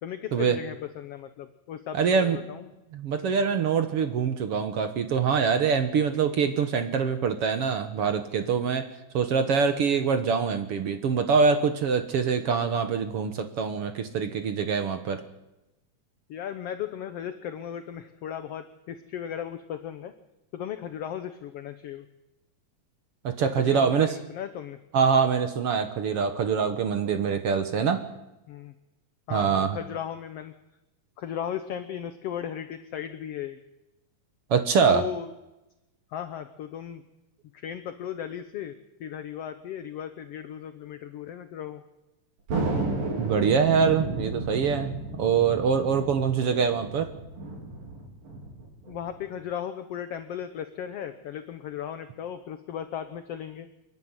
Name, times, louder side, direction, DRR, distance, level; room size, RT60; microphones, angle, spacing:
voice 1, 0.0-2.7 16.3-20.1 20.5-22.1 23.6-24.8 28.5-28.7 29.3-30.5 31.2-33.6 34.9-35.3 36.1-37.0 37.5-41.8 46.4-46.6 48.9-53.7, left 9 dB, 65° left, 10 dB, 1.5 m, -36 dB
voice 2, 1.9-2.4 2.9-8.8 9.1-15.2 23.2-24.1 24.9-28.0 29.3-29.8 34.5-35.0 43.2-47.1, right 6 dB, 55° right, 8 dB, 1.8 m, -24 dB
Thunder, 42.5-49.3, right 2 dB, 90° right, 5.9 m, -33 dB
29.0 x 10.5 x 9.8 m, 0.97 s
omnidirectional pair, 3.9 m